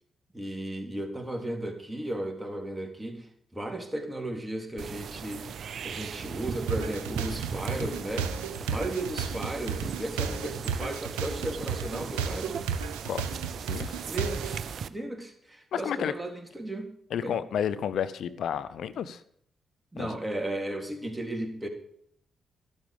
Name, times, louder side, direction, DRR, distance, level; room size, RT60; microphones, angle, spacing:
voice 1, 0.3-5.5 5.8-12.8 14.0-14.6 14.9-17.4 19.9-21.7, right 1 dB, 10° right, 3 dB, 3.6 m, -35 dB
sound 1, 4.8-14.9, right 7 dB, 65° right, 0.7 m, -38 dB
sound 2, 6.7-14.6, right 6 dB, 85° right, 1.1 m, -33 dB
voice 2, 13.7-14.0 15.7-16.1 17.1-19.2 20.0-20.2, left 8 dB, 70° left, 13 dB, 0.8 m, -31 dB
13.0 x 12.0 x 5.3 m, 0.68 s
hypercardioid pair, 40°, 0 cm